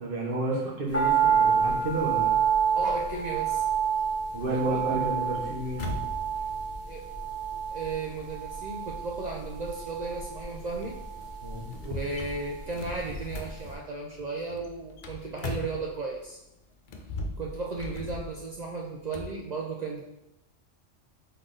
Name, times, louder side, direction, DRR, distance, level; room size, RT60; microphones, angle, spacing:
voice 1, 0.0-2.4 4.3-6.1 11.4-11.7, right 2 dB, 50° right, -2 dB, 0.9 m, -31 dB
sound 1, 0.9-13.2 13.5-13.6, right 7 dB, 15° left, 0.9 m, -28 dB
voice 2, 2.8-3.7 4.5-5.2 6.9-7.0 7.7-10.9 11.8-16.4 17.4-20.0, right 3 dB, 75° right, -2 dB, 0.4 m, -35 dB
sound 2, 4.3-16.3 16.8-19.4, left 2 dB, 60° left, 0.5 m, -40 dB
3.8 x 3.3 x 3.8 m, 0.90 s
omnidirectional pair, 1.3 m